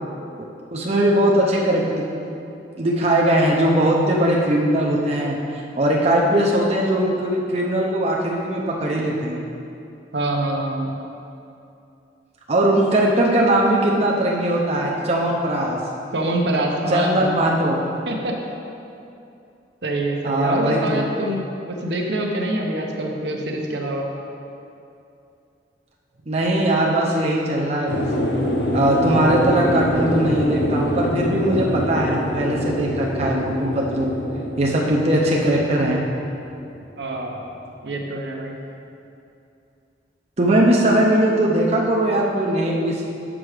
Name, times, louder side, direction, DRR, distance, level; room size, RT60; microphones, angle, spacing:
voice 1, 0.7-2.0 2.8-5.4 5.7-9.4 12.5-15.8 16.9-17.8 20.2-21.0 26.3-28.1 28.7-34.1 34.6-36.0 40.4-43.1, right 1 dB, 35° right, -3 dB, 0.6 m, -20 dB
voice 2, 10.1-10.9 16.1-17.3 18.1-18.3 19.8-24.0 37.0-37.4 37.8-38.6, right 1 dB, 70° right, 0 dB, 0.9 m, -25 dB
sound 1, 27.9-37.6, equal, 75° left, 0.8 m, -25 dB
6.1 x 6.0 x 4.9 m, 2.6 s
head